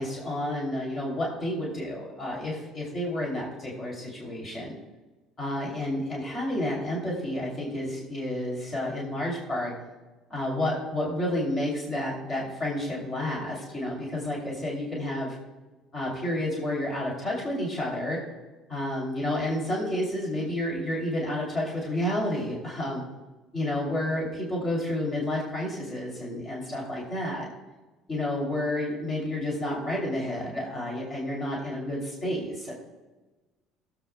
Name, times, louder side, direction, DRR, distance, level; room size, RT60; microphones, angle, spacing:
voice 1, 0.0-4.7 5.4-9.7 10.3-15.4 15.9-18.2 18.7-23.0 23.5-27.5 28.1-32.7, left 1 dB, 30° left, -3 dB, 2.8 m, -30 dB
18.5 x 7.5 x 2.2 m, 1.2 s
cardioid pair, 110°, 0 cm